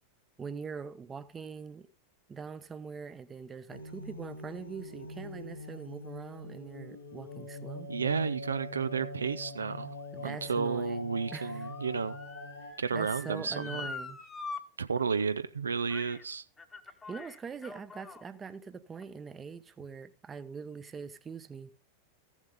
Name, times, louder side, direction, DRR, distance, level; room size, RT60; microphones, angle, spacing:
voice 1, 0.4-1.9 2.3-7.9 10.1-11.1 11.3-11.7 12.6-14.2 17.1-21.7, right 5 dB, 20° right, 0.8 m, -43 dB
sound 1, 3.7-12.7, left 2 dB, 75° left, 2.7 m, -43 dB
voice 2, 7.9-9.9 10.2-12.2 12.8-13.9 14.8-16.4, right 5 dB, 75° right, 0.5 m, -32 dB
Motor vehicle (road) / Siren, 9.4-14.6 15.0-15.1 15.9-16.2 16.6-18.2 19.0-19.1, left 4 dB, 15° left, 1.1 m, -45 dB
15.0 x 7.3 x 3.5 m
figure-of-eight pair, 90°, 0 cm